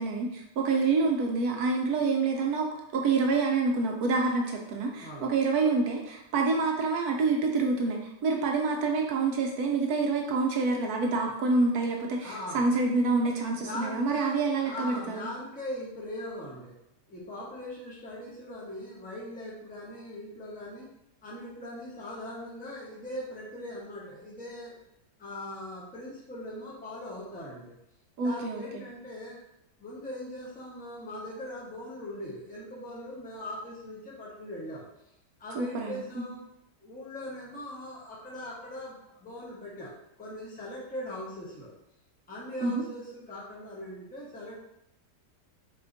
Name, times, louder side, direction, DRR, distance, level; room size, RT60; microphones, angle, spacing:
voice 1, 0.0-15.3 28.2-28.8 35.5-36.3 42.6-42.8, right 3 dB, 70° right, 1 dB, 1.0 m, -27 dB
voice 2, 5.0-5.3 12.2-12.7 13.5-16.8 17.1-20.9 21.2-24.8 25.2-27.8 28.2-29.4 29.8-34.8 35.4-36.4 36.8-39.9 40.2-41.7 42.3-44.5, left 1 dB, 10° left, -5 dB, 0.5 m, -40 dB
4.1 x 3.7 x 2.6 m, 0.84 s
omnidirectional pair, 1.8 m